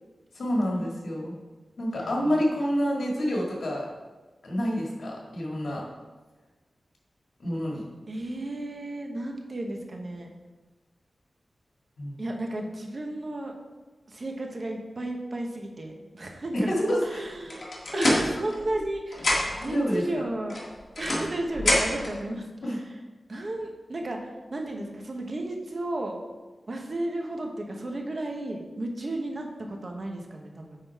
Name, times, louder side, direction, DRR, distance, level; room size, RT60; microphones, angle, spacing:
voice 1, 0.3-1.3 1.8-3.9 4.4-5.8 7.4-7.8 12.0-12.2 16.5-17.2 19.5-20.1 22.6-22.8, equal, 85° left, -3 dB, 1.9 m, -28 dB
voice 2, 1.9-2.4 8.1-10.3 12.2-13.5 14.1-16.7 17.0-17.6 17.9-20.6 21.0-23.0 23.3-26.2 26.7-30.8, right 1 dB, 45° right, 2 dB, 1.1 m, -34 dB
sound 1, 17.5-18.9 19.1-19.7 20.5-22.2, left 1 dB, 60° left, 1.7 m, -26 dB
9.1 x 3.9 x 4.7 m, 1.2 s
wide cardioid pair, 105°, 0 cm